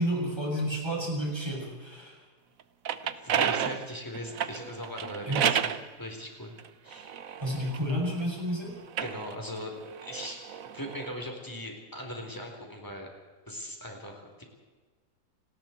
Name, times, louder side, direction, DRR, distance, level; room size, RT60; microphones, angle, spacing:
voice 1, 0.0-2.2 5.3-5.5 7.4-8.8, equal, 15° right, -3 dB, 7.5 m, -31 dB
sound 1, 2.6-5.8 6.6-8.3 8.8-11.1, right 8 dB, 55° right, 1.2 m, -32 dB
voice 2, 3.2-6.5 6.8-7.1 9.0-10.5 10.7-13.1 13.5-14.4, equal, 10° left, 2 dB, 4.1 m, -39 dB
29.0 x 20.0 x 4.6 m, 1.4 s
omnidirectional pair, 1.9 m